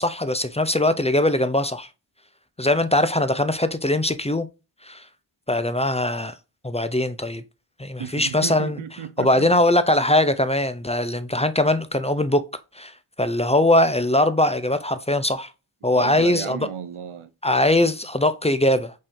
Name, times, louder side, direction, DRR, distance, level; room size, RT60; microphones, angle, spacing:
voice 1, 0.0-1.9 2.6-4.5 4.8-5.0 5.5-6.3 6.6-7.4 7.8-8.8 9.2-12.4 12.8-12.9 13.2-15.5 15.8-16.7 17.4-18.9, left 1 dB, 15° left, 0.4 m, -21 dB
voice 2, 8.0-9.5 15.9-17.3, right 8 dB, 80° right, 0.7 m, -33 dB
5.3 x 2.7 x 3.6 m
cardioid pair, 45°, 49 cm